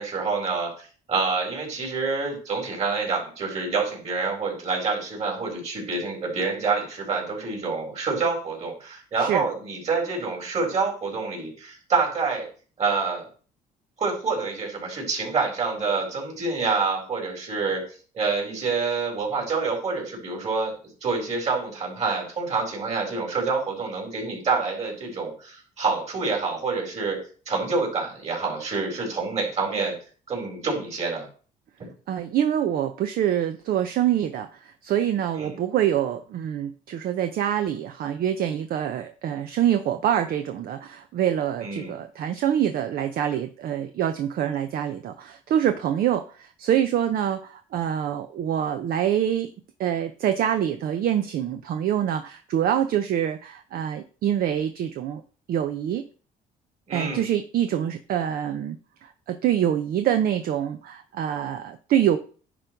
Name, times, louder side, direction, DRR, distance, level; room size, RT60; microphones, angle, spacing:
voice 1, 0.0-12.5 12.8-13.2 14.0-17.8 18.1-20.7 21.0-27.2 27.5-29.9 30.3-31.3 31.8-31.9 35.4-35.6 41.6-41.9 56.9-57.2, right 4 dB, 40° right, -1 dB, 4.3 m, -27 dB
voice 2, 32.1-49.5 49.8-55.2 55.5-56.0 56.9-58.8 59.0-62.2, right 10 dB, 60° right, 8 dB, 0.7 m, -25 dB
10.5 x 3.9 x 4.6 m, 0.40 s
cardioid pair, 110°, 17 cm